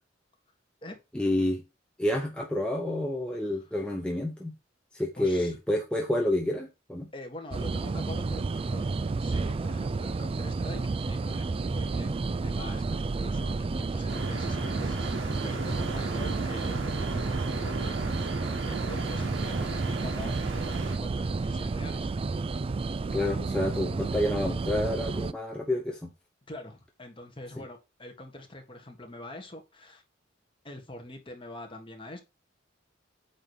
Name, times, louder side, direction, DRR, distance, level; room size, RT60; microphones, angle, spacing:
voice 1, 1.1-1.6 2.0-4.5 4.9-7.1 23.1-26.1, left 1 dB, 5° left, 0.9 m, -29 dB
voice 2, 5.2-5.6 7.1-22.1 26.5-30.0 30.6-32.2, left 1 dB, 25° left, 1.6 m, -44 dB
sound 1, 7.5-25.3, right 3 dB, 30° right, 0.3 m, -31 dB
sound 2, 14.1-21.0, right 2 dB, 90° right, 1.3 m, -38 dB
8.8 x 3.1 x 5.6 m
head